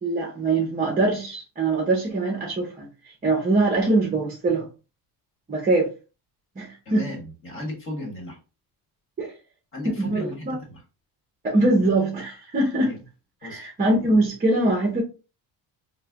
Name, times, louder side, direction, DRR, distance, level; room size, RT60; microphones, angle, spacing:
voice 1, 0.0-2.9 3.2-4.7 5.5-5.9 6.6-7.1 9.2-9.3 10.0-10.6 11.4-12.9 13.4-15.0, right 2 dB, 20° right, 0.8 m, -23 dB
voice 2, 6.9-8.4 9.7-10.8 12.8-13.0 13.4-13.7, left 1 dB, 30° left, 1.6 m, -35 dB
3.1 x 2.2 x 3.6 m
cardioid pair, 150°, 40 cm